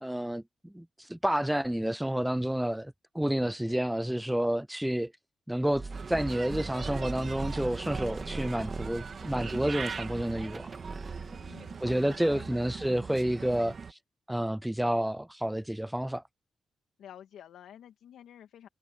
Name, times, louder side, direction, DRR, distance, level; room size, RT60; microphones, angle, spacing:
voice 1, 0.0-5.1 5.5-10.7 11.8-14.0 14.3-16.2, right 1 dB, 5° right, 0.4 m, -30 dB
voice 2, 3.4-3.8 11.3-12.6 17.0-18.7, left 10 dB, 80° left, 2.4 m, -50 dB
sound 1, 5.7-11.5, right 3 dB, 35° right, 2.5 m, -40 dB
Bird, 5.9-13.9, right 5 dB, 50° right, 2.4 m, -41 dB
cardioid pair, 65°, 0 cm